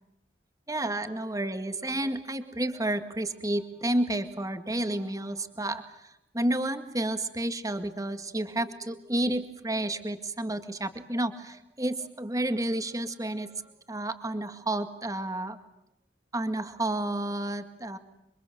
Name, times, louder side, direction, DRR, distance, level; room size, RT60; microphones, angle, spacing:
voice 1, 0.7-13.6 13.9-15.6 16.3-18.0, right 1 dB, 20° right, 8 dB, 2.0 m, -31 dB
28.5 x 24.5 x 7.8 m, 0.84 s
head